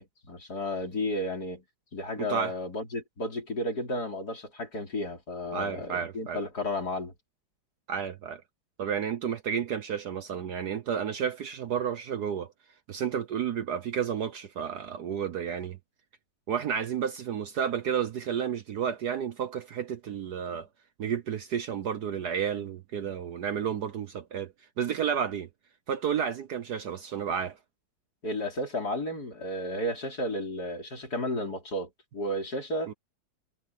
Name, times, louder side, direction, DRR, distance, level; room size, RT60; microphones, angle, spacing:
voice 1, 0.0-1.6 1.9-7.1 28.2-32.9, left 1 dB, 50° left, 5.0 m, -33 dB
voice 2, 2.2-2.5 5.5-6.4 7.9-8.4 8.8-12.5 12.9-15.8 16.5-20.7 21.0-25.5 25.9-27.6 32.9-33.0, right 8 dB, 60° right, 1.4 m, -31 dB
omnidirectional pair, 2.2 m